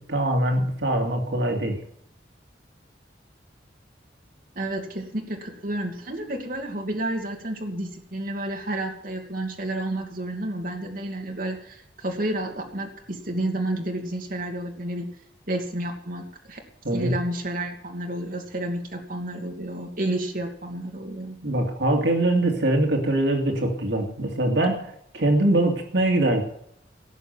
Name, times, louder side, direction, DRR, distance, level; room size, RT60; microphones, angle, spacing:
voice 1, 0.0-1.8 16.8-17.2 21.4-24.9 25.1-26.4, right 1 dB, 80° right, 3 dB, 2.5 m, -23 dB
voice 2, 4.6-15.1 15.5-16.6 16.9-21.4, right 1 dB, 50° right, 2 dB, 2.6 m, -30 dB
17.5 x 6.9 x 9.2 m, 0.71 s
head